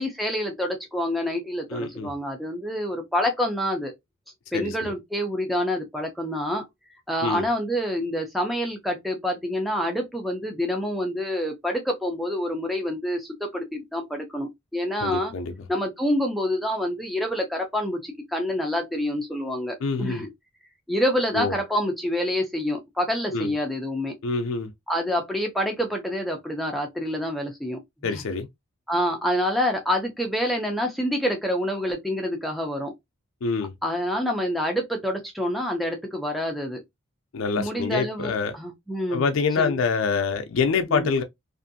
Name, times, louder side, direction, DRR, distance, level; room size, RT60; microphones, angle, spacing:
voice 1, 0.0-3.9 4.5-6.6 7.1-15.3 15.7-20.3 20.9-24.1 24.9-28.2 28.9-32.9 33.8-36.8 37.6-39.3 39.6-39.8 40.9-41.1, equal, ahead, 0.4 m, -27 dB
voice 2, 1.7-2.1 4.5-4.9 7.2-7.5 15.0-15.5 19.8-20.2 21.3-21.5 23.3-23.5 24.2-24.7 28.0-28.5 33.4-33.7 37.3-38.6 39.1-41.2, left 4 dB, 75° left, 0.4 m, -26 dB
2.6 x 2.4 x 2.6 m
head